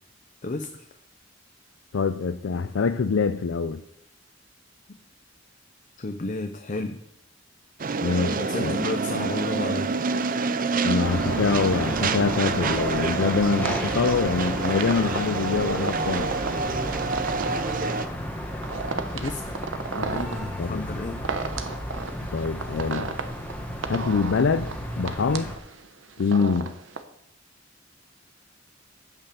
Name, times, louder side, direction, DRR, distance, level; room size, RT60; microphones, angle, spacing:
voice 1, 0.4-0.9 4.9-5.0 6.0-7.0 8.1-9.9 19.1-21.2, left 2 dB, 40° left, 0.7 m, -32 dB
voice 2, 1.9-3.8 8.0-8.3 8.6-8.8 10.8-16.3 20.6-21.0 22.3-23.1 23.9-25.6 26.2-26.8, left 5 dB, 75° left, 0.5 m, -25 dB
sound 1, 7.8-18.1, right 4 dB, 45° right, 0.6 m, -27 dB
sound 2, 11.0-25.5, equal, 10° left, 1.4 m, -33 dB
sound 3, 13.2-27.0, right 4 dB, 80° right, 1.0 m, -35 dB
9.0 x 8.0 x 6.9 m
head